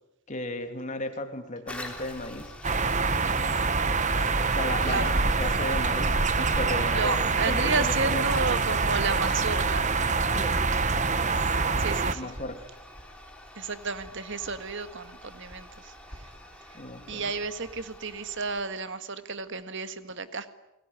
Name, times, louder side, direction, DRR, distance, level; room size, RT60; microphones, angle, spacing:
voice 1, 0.3-2.6 4.5-8.3 10.3-10.6 12.1-12.7 16.7-17.3, left 1 dB, 35° left, 7 dB, 2.8 m, -35 dB
Toilet flush, 1.7-18.7, left 1 dB, 5° left, 3.7 m, -47 dB
sound 1, 2.6-12.1, right 4 dB, 35° right, 1.2 m, -25 dB
voice 2, 6.9-9.9 11.8-12.3 13.6-15.9 17.1-20.5, right 4 dB, 55° right, 11 dB, 1.7 m, -32 dB
29.0 x 20.0 x 9.8 m, 0.91 s
head